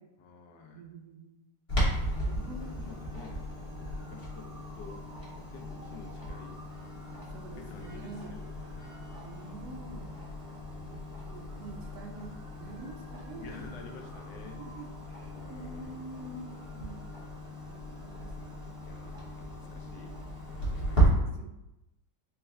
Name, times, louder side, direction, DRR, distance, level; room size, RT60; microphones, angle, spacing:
voice 1, 0.2-0.9 2.1-5.0 5.3-6.5 7.5-9.1 13.4-14.6 15.3-16.4 18.8-21.5, left 4 dB, 75° left, 2 dB, 1.2 m, -50 dB
voice 2, 0.7-1.3 2.0-2.8 7.3-8.4 9.2-10.2 10.8-12.3 12.6-13.7 14.6-17.1 17.7-18.9 19.6-19.9 20.9-21.5, right 3 dB, 70° right, 3 dB, 1.0 m, -47 dB
Clock, 1.7-21.1, right 1 dB, 25° left, 1.0 m, -36 dB
4.3 x 2.3 x 3.2 m, 0.91 s
omnidirectional pair, 1.9 m